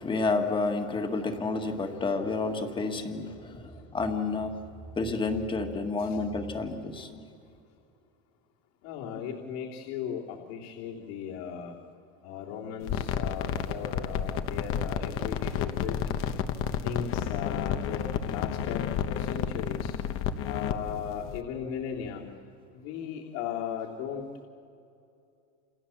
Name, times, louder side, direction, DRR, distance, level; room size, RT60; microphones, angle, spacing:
voice 1, 0.0-4.5 5.0-7.2, left 3 dB, 15° left, 5 dB, 1.7 m, -30 dB
voice 2, 8.8-11.8 12.2-16.0 16.8-19.9 20.4-22.2 22.7-24.5, left 8 dB, 65° left, -4 dB, 3.4 m, -37 dB
sound 1, 12.8-21.4, left 8 dB, 35° left, 1.1 m, -31 dB
29.0 x 28.5 x 7.2 m, 2.5 s
cardioid pair, 170°, 35 cm